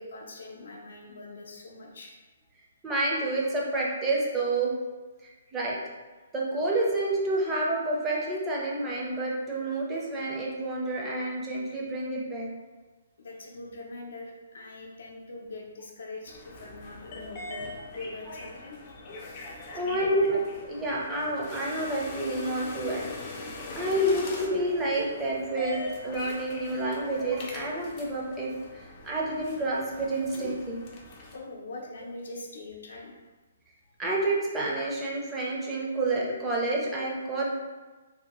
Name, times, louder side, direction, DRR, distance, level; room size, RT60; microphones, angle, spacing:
voice 1, 0.0-2.1 13.2-20.1 31.1-33.1, left 2 dB, 75° left, -1 dB, 0.6 m, -43 dB
voice 2, 2.8-4.7 5.2-5.8 6.3-12.5 19.7-23.5 23.8-30.9 34.0-37.6, right 2 dB, 15° right, -4 dB, 0.6 m, -29 dB
sound 1, 16.3-31.4, left 2 dB, 35° left, 0.5 m, -41 dB
2.7 x 2.2 x 2.9 m, 1.2 s
hypercardioid pair, 150°, 0 cm